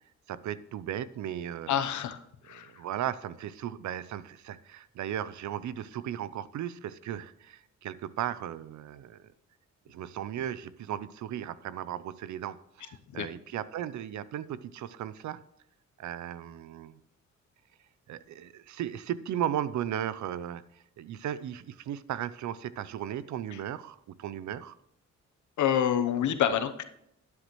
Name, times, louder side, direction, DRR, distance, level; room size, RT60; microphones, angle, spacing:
voice 1, 0.3-1.9 2.5-9.3 9.9-15.4 16.0-17.0 18.1-24.8, right 10 dB, 70° right, 17 dB, 0.6 m, -36 dB
voice 2, 1.7-2.7 13.1-13.3 23.5-23.6 25.6-26.8, left 9 dB, 75° left, 10 dB, 1.0 m, -28 dB
11.5 x 9.7 x 3.1 m, 0.77 s
cardioid pair, 85°, 30 cm